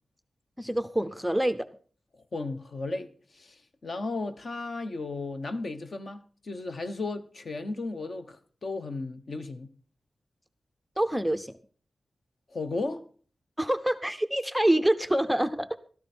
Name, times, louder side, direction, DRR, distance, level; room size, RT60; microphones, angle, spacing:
voice 1, 0.6-1.6 11.0-11.5 13.6-15.9, right 1 dB, ahead, 0.6 m, -26 dB
voice 2, 2.1-9.7 12.5-13.1, left 3 dB, 50° left, 1.1 m, -35 dB
14.0 x 13.0 x 4.4 m
wide cardioid pair, 140°, 0 cm